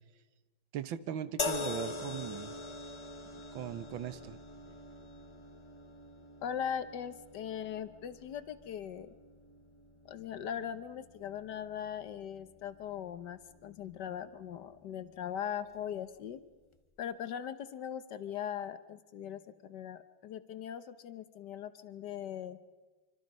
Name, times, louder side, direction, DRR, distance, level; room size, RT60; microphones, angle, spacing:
voice 1, 0.7-2.5 3.5-4.4, right 9 dB, 80° right, 13 dB, 1.7 m, -39 dB
sound 1, 1.4-14.7 15.7-15.9, left 3 dB, 45° left, 0.3 m, -44 dB
voice 2, 6.4-9.1 10.0-16.4 17.0-22.6, left 9 dB, 65° left, 12 dB, 1.4 m, -40 dB
25.5 x 25.0 x 5.4 m, 1.2 s
omnidirectional pair, 2.2 m